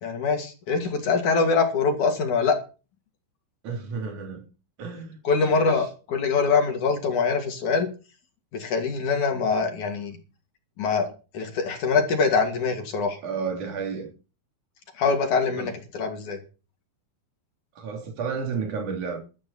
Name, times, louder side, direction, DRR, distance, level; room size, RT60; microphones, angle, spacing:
voice 1, 0.0-2.6 5.2-7.9 8.5-10.2 10.8-11.1 11.3-13.2 15.0-16.4, left 4 dB, 65° left, 4.0 m, -24 dB
voice 2, 3.6-4.4 4.8-5.8 13.2-14.1 15.6-15.7 17.8-19.2, right 5 dB, 60° right, 4.6 m, -32 dB
16.0 x 12.0 x 4.4 m
omnidirectional pair, 3.9 m